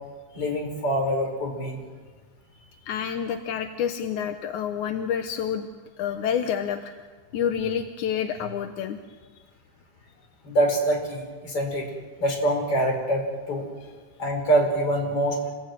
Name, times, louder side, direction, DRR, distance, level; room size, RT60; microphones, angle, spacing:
voice 1, 0.3-1.8 10.4-11.9 12.2-13.7 14.2-15.5, right 1 dB, 35° left, 3 dB, 6.0 m, -25 dB
voice 2, 2.9-5.7 6.0-6.9 7.3-9.0, left 8 dB, 65° left, 7 dB, 2.0 m, -28 dB
28.5 x 21.5 x 9.2 m, 1.4 s
omnidirectional pair, 4.7 m